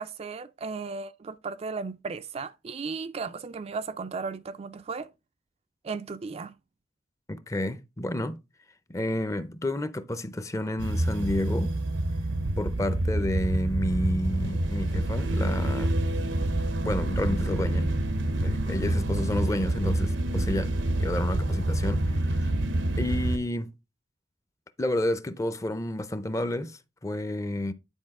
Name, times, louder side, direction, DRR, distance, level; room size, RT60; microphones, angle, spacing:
voice 1, 0.0-5.1 5.8-6.5, right 4 dB, 35° right, 0.3 m, -35 dB
voice 2, 7.3-8.4 8.9-11.7 12.6-15.9 16.5-17.9 18.4-22.5 23.0-23.7 24.8-27.7, left 1 dB, 15° left, 0.6 m, -30 dB
sound 1, 10.8-23.4, right 1 dB, 85° right, 0.8 m, -27 dB
9.9 x 4.7 x 3.6 m
head